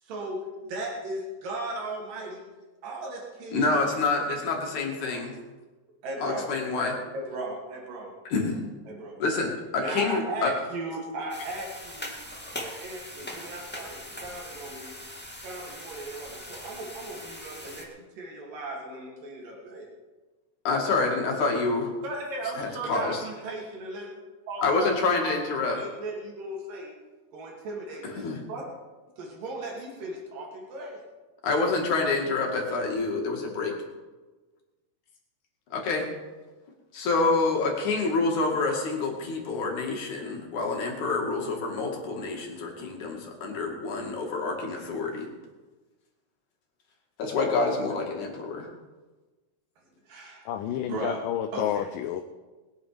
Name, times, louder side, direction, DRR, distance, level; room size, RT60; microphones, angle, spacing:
voice 1, 0.0-2.4 2.8-4.0 6.0-6.5 6.8-8.1 8.9-9.2 9.8-12.2 12.6-14.9 15.4-17.9 18.2-19.9 22.0-24.1 24.5-25.4 25.6-26.9 27.3-28.8 29.2-31.0 50.1-51.2 51.5-51.9, right 2 dB, 85° right, -2 dB, 4.4 m, -37 dB
voice 2, 3.5-5.3 6.2-6.9 8.3-8.6 9.2-10.5 20.7-21.9 22.6-23.2 24.6-25.8 28.2-28.4 31.4-33.7 35.7-36.1 36.9-45.3 47.2-48.7, left 3 dB, 65° left, 1 dB, 3.6 m, -27 dB
sound 1, 11.3-17.8, left 1 dB, 5° left, 0.8 m, -41 dB
voice 3, 50.5-52.2, left 11 dB, 85° left, 6 dB, 2.4 m, -30 dB
20.5 x 9.3 x 5.1 m, 1.2 s
omnidirectional pair, 3.8 m